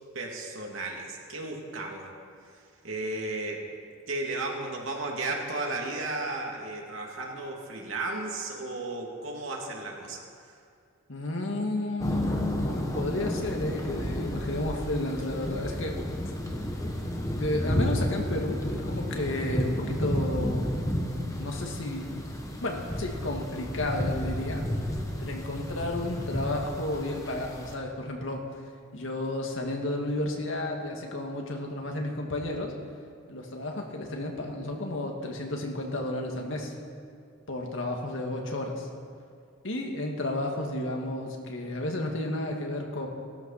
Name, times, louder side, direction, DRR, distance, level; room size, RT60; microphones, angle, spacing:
voice 1, 0.1-2.1 2.5-3.7 4.1-10.6, right 2 dB, 90° right, 0 dB, 2.6 m, -34 dB
voice 2, 11.1-16.0 17.4-20.7 21.4-22.1 22.6-24.7 25.2-28.4 28.9-32.7 33.3-36.7 37.5-38.9 39.6-43.1, left 1 dB, 75° left, 1 dB, 2.1 m, -32 dB
sound 1, 12.0-27.8, equal, 15° left, 1.5 m, -32 dB
16.5 x 13.5 x 5.8 m, 2.3 s
head